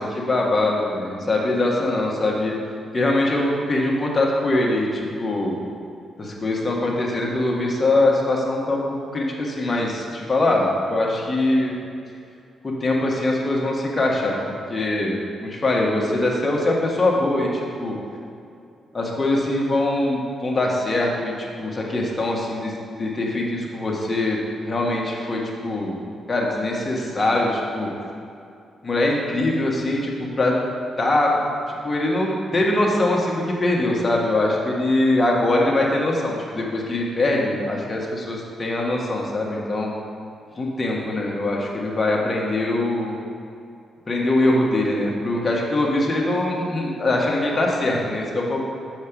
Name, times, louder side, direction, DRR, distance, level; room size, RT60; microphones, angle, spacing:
voice 1, 0.0-2.5 2.9-5.5 6.2-8.8 9.1-11.7 12.6-14.4 14.7-18.0 18.9-22.7 23.0-24.4 24.6-26.0 26.3-27.9 28.8-30.5 31.0-31.3 31.8-39.9 40.6-43.1 44.1-48.6, left 2 dB, 30° left, -2 dB, 1.5 m, -22 dB
6.3 x 4.9 x 5.9 m, 2.5 s
cardioid pair, 70°, 0 cm